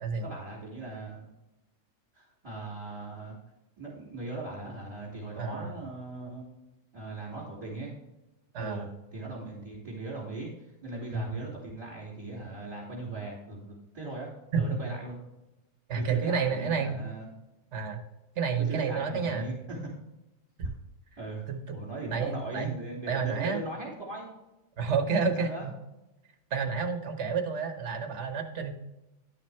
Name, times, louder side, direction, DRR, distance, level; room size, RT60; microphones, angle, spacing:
voice 1, 0.2-1.3 2.1-3.4 3.8-6.5 6.9-8.0 8.6-15.2 15.9-17.3 18.6-19.9 21.2-24.3 25.2-25.7, right 2 dB, 30° right, -8 dB, 3.1 m, -39 dB
voice 2, 5.4-5.8 8.5-8.9 11.1-11.4 14.5-14.8 15.9-17.0 17.7-18.0 18.4-19.5 20.6-20.7 21.5-21.8 22.1-22.7 23.1-23.6 24.8-25.7 26.5-28.7, right 5 dB, 55° right, 6 dB, 1.3 m, -30 dB
11.5 x 5.8 x 3.4 m, 0.99 s
omnidirectional pair, 1.4 m